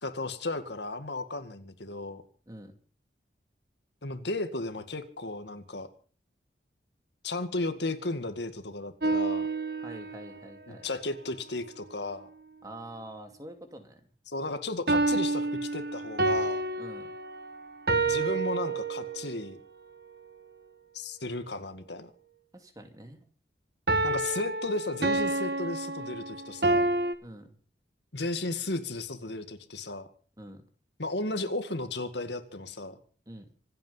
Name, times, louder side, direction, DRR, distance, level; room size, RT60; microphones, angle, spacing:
voice 1, 0.0-2.2 4.0-5.9 7.2-9.5 10.7-12.3 14.3-16.6 18.1-19.6 20.9-22.1 24.0-26.9 28.1-30.1 31.0-33.0, left 2 dB, 75° left, 9 dB, 2.1 m, -34 dB
voice 2, 2.5-2.8 9.8-10.9 12.6-14.0 16.8-17.1 22.5-23.2 27.2-27.6 30.4-30.6 33.3-33.5, right 1 dB, 20° right, 6 dB, 2.6 m, -45 dB
sound 1, 9.0-10.4 14.9-19.4 23.9-27.1, right 2 dB, 60° right, 1.6 m, -29 dB
26.0 x 9.2 x 5.7 m, 0.42 s
head